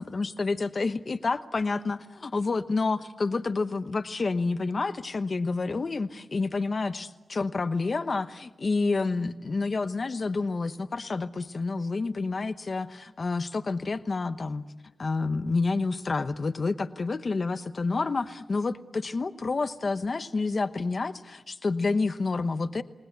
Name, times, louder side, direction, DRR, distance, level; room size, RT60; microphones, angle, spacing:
voice 1, 0.0-14.6 15.0-22.8, left 3 dB, 50° left, 11 dB, 1.0 m, -29 dB
29.5 x 19.0 x 8.2 m, 1.2 s
wide cardioid pair, 100°, 0 cm